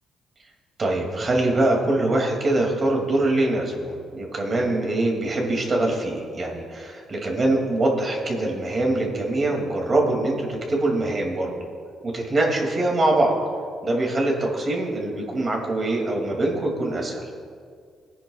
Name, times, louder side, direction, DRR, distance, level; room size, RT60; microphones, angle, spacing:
voice 1, 0.8-11.5 12.0-13.3 13.8-17.2, right 2 dB, 40° right, 0 dB, 2.6 m, -23 dB
19.5 x 10.0 x 2.4 m, 2.2 s
cardioid pair, 90°, 0 cm